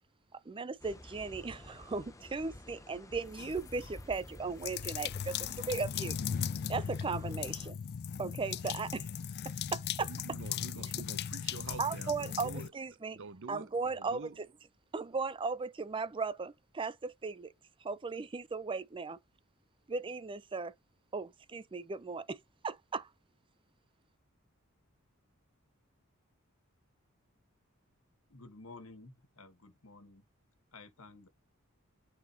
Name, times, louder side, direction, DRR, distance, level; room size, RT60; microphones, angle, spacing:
voice 1, 0.5-6.2 6.7-7.7 8.2-9.1 9.7-10.1 11.8-13.2 13.5-14.3 14.9-17.5 17.8-19.2 19.9-20.7 21.1-22.4 22.6-23.1, right 4 dB, 25° right, 0.4 m, -37 dB
sound 1, 0.8-7.7, left 1 dB, 15° left, 0.7 m, -51 dB
sound 2, 3.3-4.0 4.6-12.7, left 8 dB, 50° left, 0.4 m, -38 dB
voice 2, 10.1-12.7 13.1-14.4, right 4 dB, 60° right, 0.7 m, -47 dB
voice 3, 28.3-30.2 30.7-31.3, left 3 dB, 70° left, 1.6 m, -52 dB
12.5 x 4.3 x 2.8 m
head